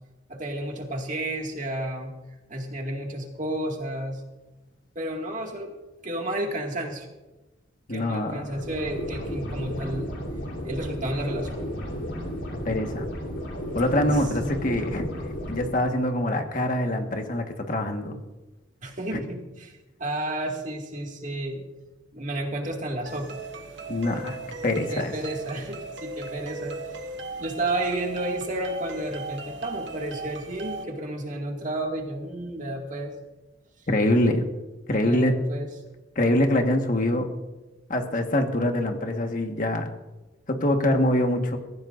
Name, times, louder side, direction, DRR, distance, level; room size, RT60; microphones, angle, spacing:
voice 1, 0.3-2.1 2.5-4.2 5.0-5.8 6.0-7.1 7.9-10.1 10.6-11.6 14.4-14.5 18.8-21.7 22.1-23.4 24.9-27.0 27.4-33.1 35.0-35.7, right 1 dB, 40° right, 1 dB, 2.1 m, -31 dB
voice 2, 7.9-8.5 12.6-13.1 13.7-15.1 15.5-18.2 19.1-19.2 23.9-24.4 24.6-25.1 33.9-34.5 34.9-35.4 36.1-37.3 37.9-39.9 40.5-41.6, left 1 dB, 40° left, 4 dB, 1.5 m, -24 dB
sound 1, 8.4-15.7, equal, 65° left, 3.7 m, -33 dB
sound 2, 23.1-30.8, right 3 dB, 65° right, 1.6 m, -37 dB
23.0 x 15.0 x 2.6 m, 1.1 s
head